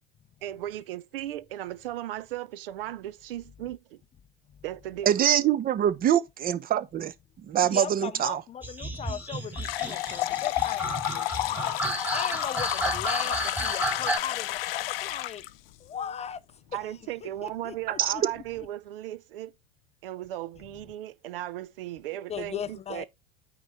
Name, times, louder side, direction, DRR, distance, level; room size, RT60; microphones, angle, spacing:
voice 1, 0.4-4.0 4.6-5.1 16.7-19.5 20.0-23.1, right 13 dB, 65° right, 0.7 m, -36 dB
voice 2, 5.1-7.1 7.4-8.4 18.0-18.1, right 10 dB, 30° right, 0.8 m, -24 dB
voice 3, 7.6-11.7 12.1-13.4 13.6-15.4 15.8-16.4 17.2-18.4 22.3-23.1, left 8 dB, 20° left, 0.4 m, -38 dB
sound 1, 8.6-14.2, right 1 dB, 5° right, 1.9 m, -32 dB
sound 2, 9.6-15.5, left 16 dB, 70° left, 0.5 m, -31 dB
8.9 x 3.9 x 4.2 m
hypercardioid pair, 85°, 30 cm